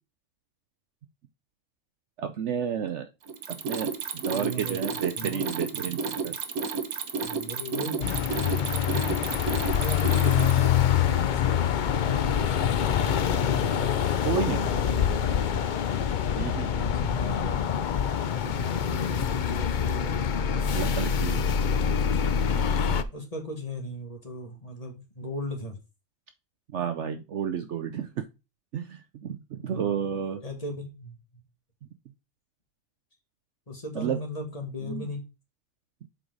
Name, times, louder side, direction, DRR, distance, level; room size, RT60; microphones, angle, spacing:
voice 1, 2.2-3.1 3.5-6.4 12.3-12.5 14.2-14.7 16.4-16.9 20.7-21.4 21.8-22.0 26.7-28.2 28.7-30.4 33.9-34.2 34.8-35.1, right 8 dB, 60° right, 8 dB, 0.9 m, -31 dB
Mechanisms, 3.3-10.7, right 5 dB, 85° right, 1.4 m, -31 dB
voice 2, 4.3-5.5 7.2-14.2 14.6-15.7 16.7-17.6 18.4-22.2 23.1-25.8 29.6-31.2 33.7-35.2, equal, 25° left, 2 dB, 1.9 m, -38 dB
sound 1, 8.0-23.0, left 8 dB, 65° left, 0.4 m, -25 dB
7.9 x 4.9 x 3.9 m, 0.27 s
omnidirectional pair, 1.5 m